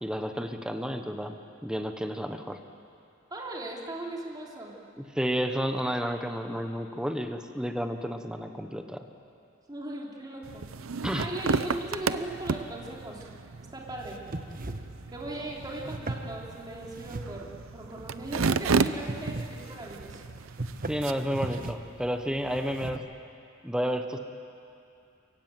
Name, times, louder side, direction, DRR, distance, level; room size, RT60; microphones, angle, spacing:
voice 1, 0.0-2.6 5.0-9.1 11.0-11.3 20.9-23.0 23.6-24.2, equal, 5° right, 6 dB, 1.0 m, -31 dB
voice 2, 3.3-4.7 9.7-10.6 11.1-13.2 13.6-14.2 15.1-20.2, right 1 dB, 20° right, -2 dB, 3.2 m, -38 dB
sound 1, 10.4-21.6, right 4 dB, 80° right, 0.7 m, -33 dB
sound 2, 14.0-23.0, right 2 dB, 45° right, 1.2 m, -40 dB
28.5 x 16.0 x 9.1 m, 2.6 s
head